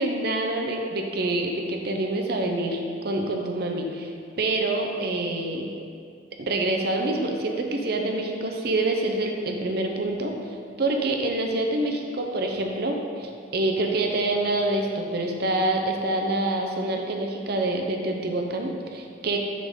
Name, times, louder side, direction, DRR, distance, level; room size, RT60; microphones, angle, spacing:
voice 1, 0.0-2.8 3.0-4.1 4.4-5.7 6.4-10.3 10.8-19.4, right 2 dB, 55° right, 2 dB, 0.7 m, -26 dB
10.0 x 3.9 x 3.7 m, 2.3 s
head